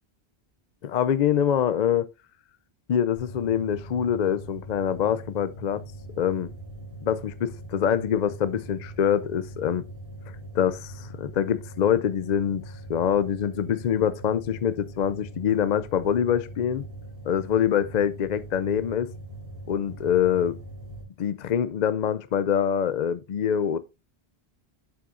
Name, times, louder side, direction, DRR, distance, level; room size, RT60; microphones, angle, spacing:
voice 1, 0.8-2.1 2.9-5.8 6.2-6.5 7.0-9.8 10.5-12.6 12.9-16.9 17.3-19.1 19.7-20.6 21.2-23.8, left 9 dB, 55° left, 0.5 m, -25 dB
sound 1, 3.2-21.0, right 1 dB, 80° right, 3.5 m, -41 dB
11.0 x 5.8 x 2.5 m
omnidirectional pair, 1.0 m